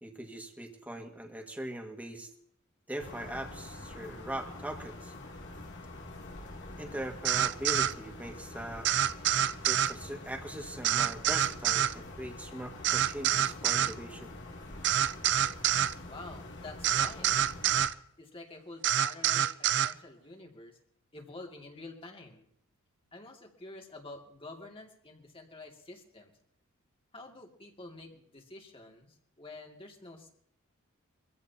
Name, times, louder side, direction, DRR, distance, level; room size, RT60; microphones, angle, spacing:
voice 1, 0.0-2.3 2.9-5.1 6.8-8.9 9.7-14.3, right 1 dB, 10° right, 2 dB, 1.9 m, -40 dB
sound 1, 3.0-17.9, left 2 dB, 60° left, 2.9 m, -46 dB
sound 2, 7.3-7.9 8.9-9.9 10.8-11.9 12.8-13.9 14.8-15.9 16.8-17.9 18.8-19.9, right 10 dB, 60° right, 0.5 m, -27 dB
voice 2, 16.0-17.5 18.2-20.8 21.1-22.5 23.1-26.3 27.1-30.3, left 2 dB, 25° left, 1 dB, 2.5 m, -48 dB
24.5 x 15.0 x 2.9 m, 0.67 s
head